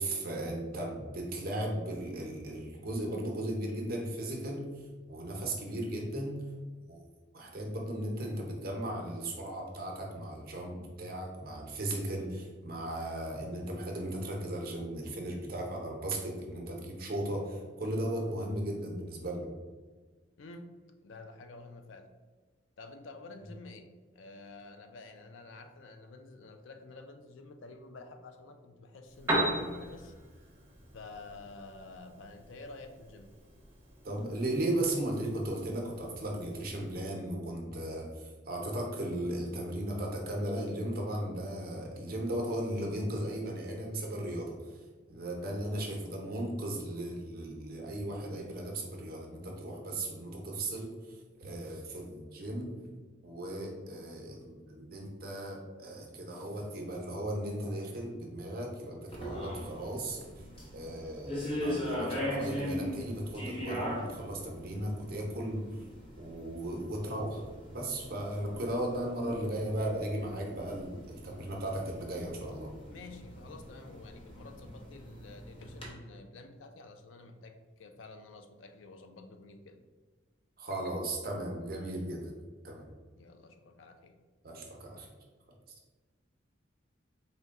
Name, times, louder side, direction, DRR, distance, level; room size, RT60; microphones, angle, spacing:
voice 1, 0.0-4.7 5.1-6.4 6.9-7.0 7.3-19.5 34.0-44.8 45.1-52.8 53.2-60.4 60.7-65.7 66.2-67.4 67.7-72.7 80.6-82.4 82.6-82.9 84.4-85.1, right 1 dB, 50° right, 0 dB, 0.7 m, -36 dB
voice 2, 20.4-20.7 21.0-22.1 22.8-30.1 30.9-33.3 72.9-79.8 83.2-84.2, left 3 dB, 85° left, 7 dB, 0.4 m, -50 dB
Piano, 29.0-37.0, right 1 dB, 10° right, 0.9 m, -39 dB
sound 1, 59.1-75.9, equal, 30° left, 0.8 m, -40 dB
4.2 x 2.2 x 3.6 m, 1.4 s
head